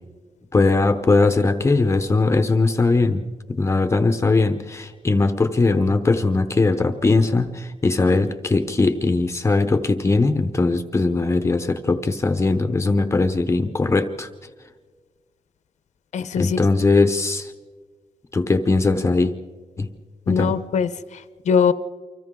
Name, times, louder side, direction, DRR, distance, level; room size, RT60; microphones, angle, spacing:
voice 1, 0.5-14.3 16.4-17.5 18.3-19.3 19.8-19.9 20.3-20.6, left 3 dB, 20° left, 8 dB, 0.8 m, -20 dB
voice 2, 16.1-16.6 20.3-21.7, left 6 dB, 80° left, 13 dB, 0.9 m, -22 dB
30.0 x 25.0 x 3.8 m, 1.5 s
wide cardioid pair, 165°, 12 cm